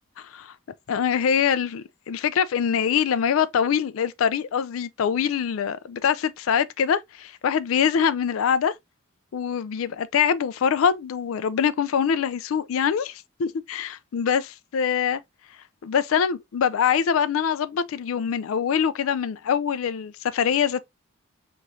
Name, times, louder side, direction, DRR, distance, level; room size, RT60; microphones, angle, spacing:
voice 1, 0.2-0.5 0.9-8.7 9.3-15.2 15.8-20.8, left 7 dB, 75° left, 0.4 m, -24 dB
4.8 x 3.0 x 2.5 m
head